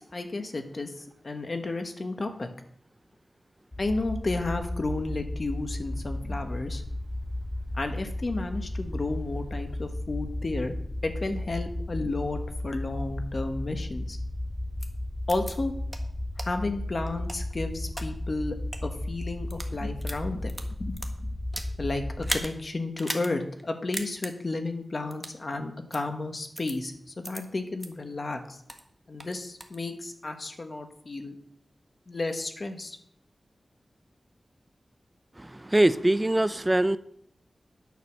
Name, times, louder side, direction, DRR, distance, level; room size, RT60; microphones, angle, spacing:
voice 1, 0.0-2.5 3.8-6.8 7.7-10.8 11.0-14.2 15.3-15.7 16.4-18.5 18.8-20.5 20.8-21.3 21.8-28.6 29.1-31.3 32.1-33.0, left 2 dB, 50° left, 6 dB, 1.4 m, -32 dB
sound 1, 3.7-22.4, left 1 dB, 25° left, 2.9 m, -34 dB
sound 2, 14.8-14.9 15.3-15.5 15.9-16.0 16.4-16.5 17.0-18.1 18.6-18.8 19.4-19.7 20.0-21.7 22.2-22.5 23.0-23.3 23.6-23.7 23.9-24.3 25.1-25.4 25.9-26.0 26.6-26.7 27.2-27.4 27.8-27.9 28.3-28.8 29.2-29.8, equal, 5° left, 1.4 m, -36 dB
voice 2, 35.4-37.0, right 1 dB, 20° right, 14 dB, 0.4 m, -23 dB
9.5 x 6.7 x 6.3 m, 0.71 s
wide cardioid pair, 65°, 0 cm